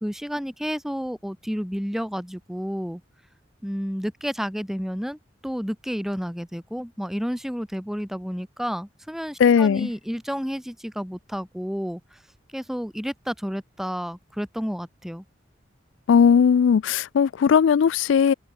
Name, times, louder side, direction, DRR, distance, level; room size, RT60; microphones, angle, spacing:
voice 1, 0.0-3.0 3.6-5.2 5.4-12.2 12.5-15.2, equal, ahead, 2.7 m, -31 dB
voice 2, 9.4-9.9 16.1-18.3, left 7 dB, 80° left, 0.3 m, -18 dB
open air
head